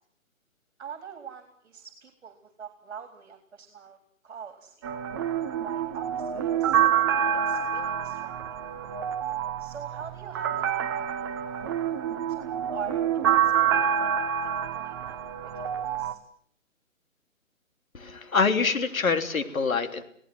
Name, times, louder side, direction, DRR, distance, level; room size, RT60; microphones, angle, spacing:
voice 1, 0.8-4.0 4.2-4.9 5.6-6.8 7.3-8.6 9.6-10.7 11.0-11.8 12.3-14.1 14.4-16.2, right 8 dB, 50° right, 7 dB, 3.8 m, -44 dB
sound 1, 4.8-16.1, right 9 dB, 20° right, 1.0 m, -27 dB
voice 2, 17.9-20.0, left 5 dB, 80° left, 8 dB, 3.4 m, -25 dB
27.5 x 18.0 x 7.9 m, 0.64 s
hypercardioid pair, 160°, 41 cm